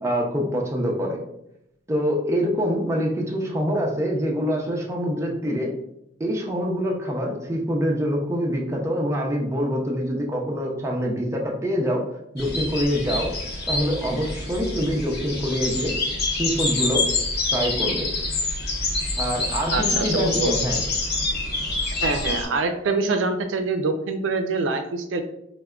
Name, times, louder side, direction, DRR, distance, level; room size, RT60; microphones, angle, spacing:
voice 1, 0.0-1.2 1.9-5.7 6.2-12.0 12.3-13.3 13.7-15.9 16.4-17.0 17.5-18.1 19.2-20.8, equal, 15° right, 0 dB, 0.5 m, -25 dB
sound 1, 12.4-22.4, left 3 dB, 60° left, 0.7 m, -26 dB
voice 2, 19.7-20.5 22.0-25.2, right 3 dB, 85° right, 7 dB, 0.4 m, -25 dB
4.7 x 2.1 x 2.3 m, 0.80 s
head